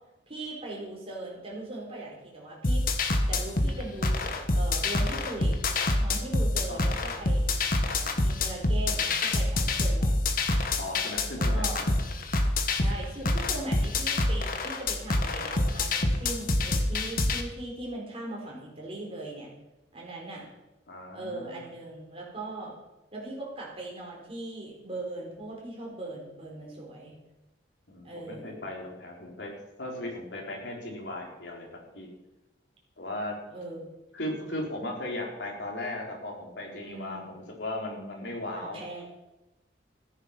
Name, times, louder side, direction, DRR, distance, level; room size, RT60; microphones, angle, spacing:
voice 1, 0.3-2.8 3.3-5.6 6.0-7.5 7.9-10.1 11.4-11.8 12.8-19.5 19.9-20.5 21.1-22.7 23.1-27.2 28.0-28.6 33.5-33.8 36.8-37.3 38.5-39.1, right 2 dB, 30° right, -3 dB, 4.5 m, -39 dB
sound 1, 2.6-17.4, left 2 dB, 50° left, 1.4 m, -26 dB
voice 2, 10.8-11.9 20.9-21.7 27.9-29.5 29.8-31.7 31.9-32.1 33.0-33.3 34.1-38.8, left 1 dB, 65° left, -1 dB, 3.8 m, -37 dB
14.5 x 10.0 x 5.8 m, 1.0 s
head